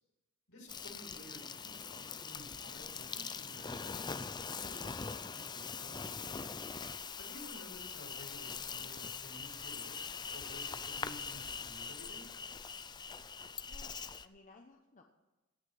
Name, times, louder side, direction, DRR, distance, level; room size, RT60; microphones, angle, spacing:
voice 1, 0.5-6.2 7.1-12.3, left 1 dB, 65° left, 0 dB, 4.7 m, -54 dB
Insect, 0.7-14.3, left 5 dB, 20° left, 0.5 m, -42 dB
voice 2, 13.7-15.0, left 3 dB, 35° left, 3 dB, 1.0 m, -60 dB
17.5 x 6.6 x 7.7 m, 1.1 s
head